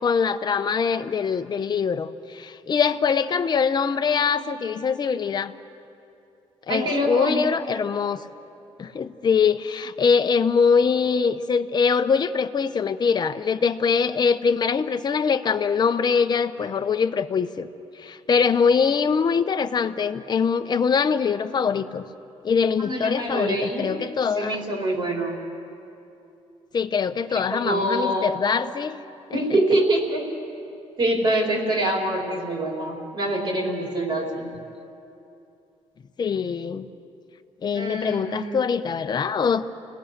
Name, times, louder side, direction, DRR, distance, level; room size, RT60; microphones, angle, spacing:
voice 1, 0.0-5.5 6.7-8.2 8.8-17.7 18.0-22.0 22.4-24.6 26.7-29.0 29.3-29.6 36.2-36.9 37.6-39.6, left 6 dB, 40° left, 9 dB, 0.8 m, -23 dB
voice 2, 6.7-7.4 22.8-24.0 24.3-25.4 27.3-28.3 29.3-30.3 31.0-34.5 37.7-38.7, right 1 dB, 45° right, 0 dB, 4.2 m, -25 dB
30.0 x 18.5 x 6.7 m, 2.7 s
cardioid pair, 120°, 11 cm